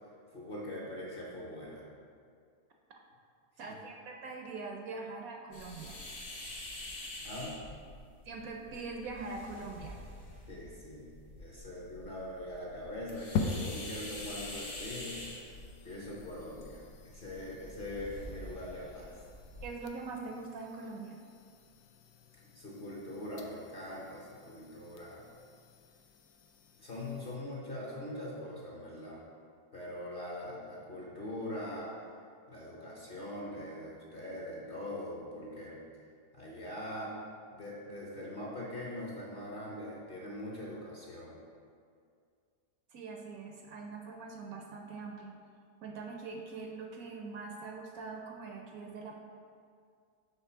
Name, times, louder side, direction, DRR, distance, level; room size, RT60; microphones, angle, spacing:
voice 1, 0.3-1.8 3.7-3.8 7.2-7.6 10.5-15.5 15.8-19.2 22.4-25.2 26.8-29.2 29.7-32.0 32.5-35.8 36.3-37.2 37.5-41.4, left 1 dB, 40° left, -5 dB, 0.9 m, -42 dB
voice 2, 3.6-6.0 8.2-10.0 19.6-21.2 42.9-45.3 45.8-49.1, right 4 dB, 70° right, 1 dB, 0.9 m, -43 dB
sound 1, 5.5-19.7, left 1 dB, 55° left, 1.5 m, -47 dB
sound 2, 13.4-27.4, left 5 dB, 80° left, 1.1 m, -44 dB
5.8 x 3.3 x 5.6 m, 2.2 s
omnidirectional pair, 1.7 m